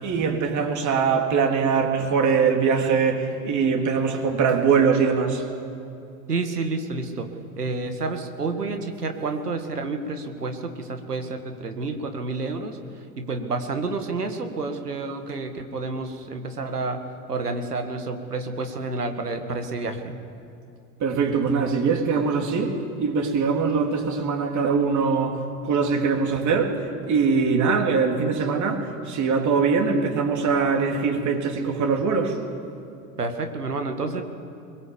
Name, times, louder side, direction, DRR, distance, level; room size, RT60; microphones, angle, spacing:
voice 1, 0.0-5.4 21.0-26.8 27.1-32.4, right 5 dB, 40° right, 2 dB, 3.5 m, -22 dB
voice 2, 6.3-7.3 7.6-12.8 13.2-17.0 17.3-20.2 33.2-34.2, right 3 dB, 85° right, 6 dB, 2.0 m, -29 dB
22.5 x 21.0 x 7.2 m, 2.7 s
figure-of-eight pair, 75°, 45 cm